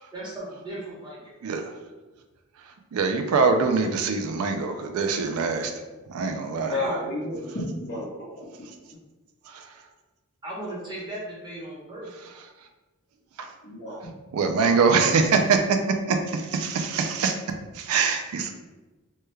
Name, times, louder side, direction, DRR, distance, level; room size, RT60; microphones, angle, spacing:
voice 1, 0.1-1.3 6.7-7.1 10.4-12.1, right 1 dB, 20° right, -6 dB, 1.0 m, -37 dB
voice 2, 1.4-1.7 2.9-5.7 6.1-6.7 9.5-9.7 13.4-13.5 14.3-15.8 16.1-17.4 17.7-18.5, right 5 dB, 80° right, 5 dB, 0.4 m, -23 dB
voice 3, 6.5-8.5 13.6-14.1, left 1 dB, 55° left, -6 dB, 1.1 m, -31 dB
3.2 x 2.2 x 3.2 m, 1.1 s
head